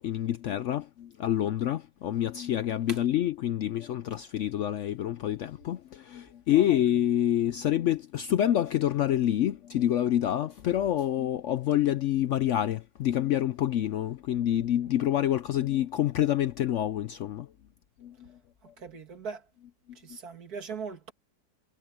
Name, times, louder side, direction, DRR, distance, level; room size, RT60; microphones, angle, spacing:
voice 1, 0.0-17.5 18.0-18.3, left 11 dB, 70° left, 0.7 m, -27 dB
voice 2, 6.5-6.8 18.8-19.4 20.0-21.1, right 5 dB, 70° right, 2.5 m, -39 dB
omnidirectional pair, 1.7 m